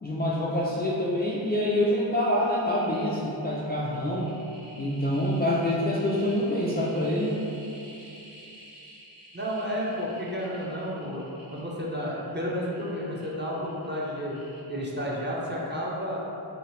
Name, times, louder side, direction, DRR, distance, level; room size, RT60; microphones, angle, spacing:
voice 1, 0.0-4.3 4.8-7.3, left 1 dB, 25° left, -7 dB, 0.3 m, -26 dB
sound 1, 2.6-15.2 15.5-15.6, right 1 dB, 60° right, 1.4 m, -50 dB
voice 2, 9.3-11.2 11.5-14.3 14.7-16.2, equal, 25° right, -5 dB, 0.6 m, -31 dB
2.9 x 2.9 x 3.0 m, 2.8 s
wide cardioid pair, 45°, 47 cm